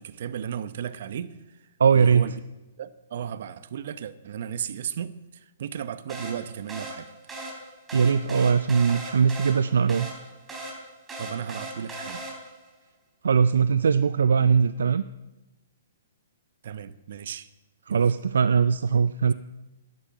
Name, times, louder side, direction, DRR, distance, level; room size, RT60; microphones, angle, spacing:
voice 1, 0.0-1.6 1.9-2.3 2.8-7.1 11.2-12.3 16.6-17.5 17.9-18.1, right 8 dB, 60° right, 14 dB, 0.8 m, -35 dB
voice 2, 1.8-2.3 7.9-10.1 13.2-15.0 17.9-19.3, right 6 dB, 75° right, 13 dB, 0.4 m, -20 dB
sound 1, 6.1-12.7, right 1 dB, 15° right, 3.7 m, -39 dB
12.5 x 10.5 x 6.8 m, 1.0 s
hypercardioid pair, 130°, 0 cm